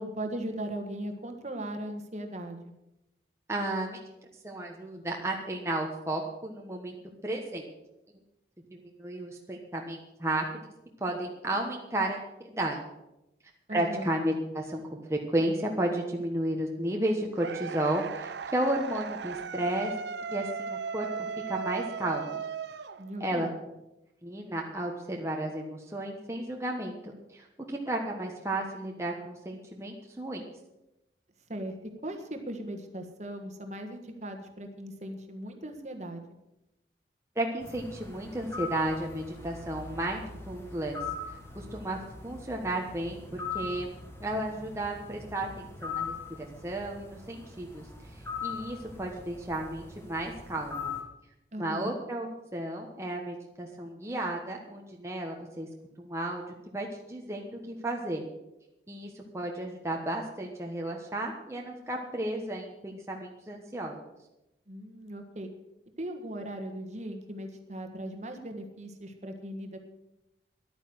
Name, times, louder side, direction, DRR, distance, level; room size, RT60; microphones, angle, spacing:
voice 1, 0.0-2.6 13.7-14.1 23.0-23.5 31.5-31.8 32.0-36.2 51.5-51.9 64.7-65.5 66.0-69.8, right 1 dB, 40° right, 5 dB, 1.6 m, -38 dB
voice 2, 3.5-4.0 4.4-7.0 7.2-7.6 8.7-10.7 11.0-12.8 13.7-14.8 15.1-19.9 20.3-22.4 23.2-23.5 24.2-30.4 37.3-41.0 41.6-42.0 42.2-43.9 44.2-47.8 48.1-50.9 51.6-55.7 56.0-58.2 58.9-64.0, right 1 dB, 15° right, 0 dB, 1.2 m, -33 dB
sound 1, 17.4-23.5, right 5 dB, 70° right, 0.6 m, -37 dB
sound 2, 37.6-51.0, left 5 dB, 15° left, 1.8 m, -41 dB
11.5 x 9.2 x 7.9 m, 0.91 s
head